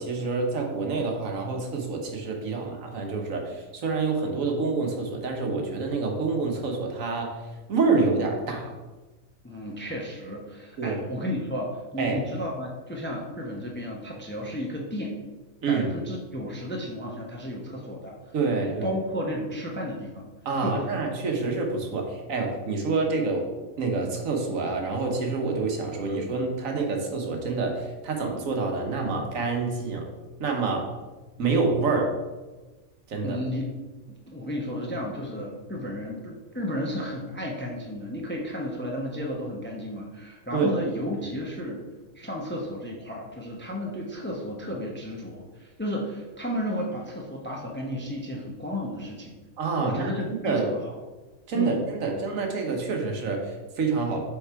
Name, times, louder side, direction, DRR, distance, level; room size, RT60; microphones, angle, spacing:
voice 1, 0.0-7.4 7.7-8.7 10.8-11.0 12.0-12.2 15.6-15.9 18.3-19.0 20.4-23.5 23.8-30.1 30.4-30.9 31.4-32.1 33.1-33.4 40.5-40.7 49.6-50.1 50.4-50.7 51.5-54.2, right 4 dB, 70° right, 2 dB, 1.4 m, -27 dB
voice 2, 9.4-15.2 15.7-18.2 18.8-20.3 20.6-20.8 33.2-33.7 34.1-41.8 42.1-49.4 49.8-51.0 51.5-51.8, equal, 10° left, -1 dB, 0.7 m, -33 dB
6.9 x 3.7 x 4.6 m, 1.2 s
omnidirectional pair, 1.4 m